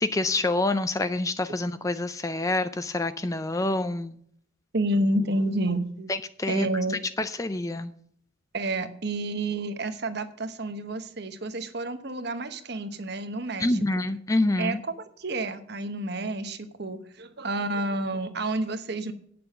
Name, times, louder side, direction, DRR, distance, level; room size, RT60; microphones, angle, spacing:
voice 1, 0.0-4.2 6.1-6.7 7.2-7.9 13.6-14.8, left 2 dB, 15° left, 11 dB, 0.4 m, -27 dB
voice 2, 4.7-6.1 6.5-7.0 8.5-14.1 14.6-19.1, right 1 dB, 50° right, 10 dB, 1.0 m, -30 dB
9.0 x 6.9 x 6.5 m, 0.63 s
head